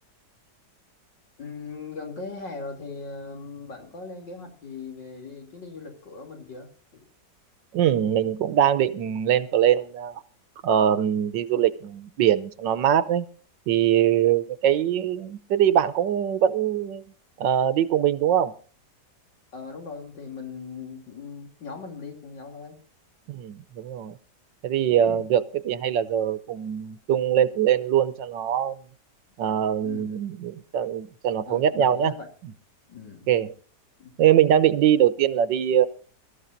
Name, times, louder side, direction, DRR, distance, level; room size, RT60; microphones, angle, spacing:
voice 1, 1.4-7.0 14.1-14.3 19.5-22.8 25.0-25.2 29.8-30.2 31.5-32.3 32.9-33.3 34.0-34.1, left 4 dB, 85° left, 2 dB, 3.8 m, -39 dB
voice 2, 7.7-10.2 10.6-13.3 13.7-17.0 17.4-18.5 23.3-24.2 24.6-28.8 29.4-32.1 33.3-33.5 34.2-35.9, right 10 dB, 85° right, 14 dB, 1.5 m, -22 dB
23.0 x 13.5 x 2.7 m, 0.41 s
omnidirectional pair, 1.9 m